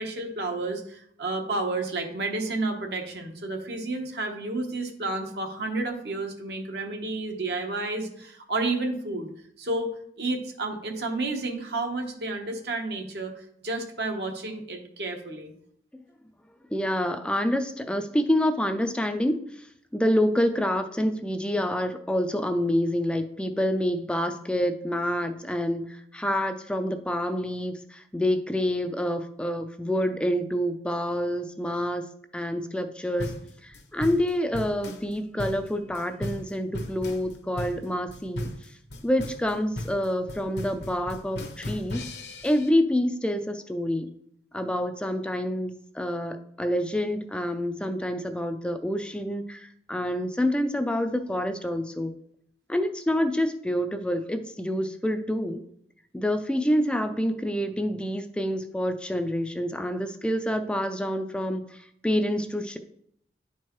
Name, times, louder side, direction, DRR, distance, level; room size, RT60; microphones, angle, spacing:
voice 1, 0.0-9.3 9.6-9.9 10.2-15.5, right 2 dB, 65° right, 3 dB, 1.0 m, -31 dB
voice 2, 16.7-19.7 19.9-32.0 32.3-33.3 33.6-38.8 39.0-42.0 42.4-44.1 44.5-52.1 52.7-55.6 56.1-62.8, equal, 5° left, 7 dB, 0.3 m, -27 dB
sound 1, 33.2-42.7, left 1 dB, 70° left, 0.8 m, -36 dB
10.0 x 4.5 x 3.0 m, 0.70 s
head